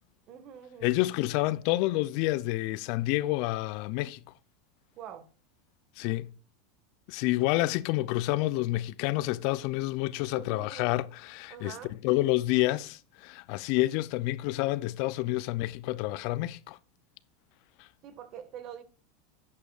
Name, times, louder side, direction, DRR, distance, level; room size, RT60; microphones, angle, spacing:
voice 1, 0.3-0.9 5.0-5.3 10.3-10.9 11.5-11.9 15.9-16.0 18.0-18.8, right 9 dB, 50° right, 1.6 m, -45 dB
voice 2, 0.8-4.2 6.0-6.3 7.1-11.8 12.0-16.8, left 18 dB, 60° left, 0.5 m, -28 dB
11.0 x 8.4 x 2.4 m
hypercardioid pair, 100°, 0 cm